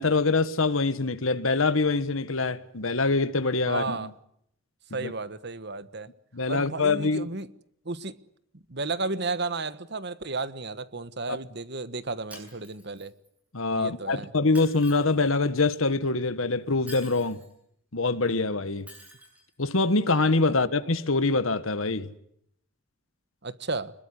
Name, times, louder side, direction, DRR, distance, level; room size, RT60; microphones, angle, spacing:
voice 1, 0.0-4.1 5.0-5.1 6.3-7.3 11.3-11.4 13.5-17.4 17.9-18.9 19.6-22.1, left 3 dB, 75° left, 1.4 m, -24 dB
voice 2, 3.6-4.1 4.9-6.1 6.5-7.5 7.8-8.1 8.7-13.1 13.8-14.3 20.6-20.7 23.4-23.9, right 3 dB, 50° right, 1.3 m, -33 dB
Shatter, 12.3-13.3 14.5-15.3 16.9-17.5 18.9-19.4, equal, 5° right, 7.6 m, -47 dB
26.0 x 21.5 x 9.8 m
head